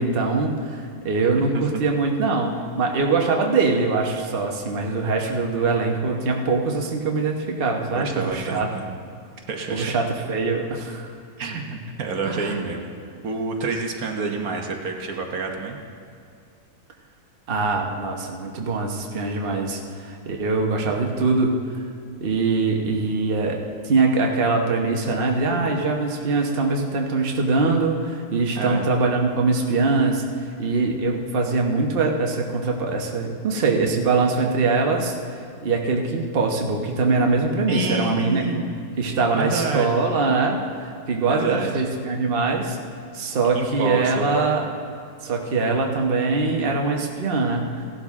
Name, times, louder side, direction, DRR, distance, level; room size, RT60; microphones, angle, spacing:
voice 1, 0.0-8.7 9.7-11.1 12.3-12.5 17.5-21.8 22.2-23.6 23.8-30.2 30.6-35.1 35.6-38.4 39.0-42.8 43.1-44.6 45.2-47.8, right 3 dB, 40° right, 1 dB, 1.2 m, -23 dB
voice 2, 7.9-8.8 9.5-9.9 11.4-15.8 28.6-28.9 37.7-38.7 39.3-40.1 41.3-41.9 43.5-44.5, right 4 dB, 75° right, 2 dB, 1.5 m, -28 dB
16.5 x 12.0 x 3.6 m, 2.4 s
omnidirectional pair, 1.5 m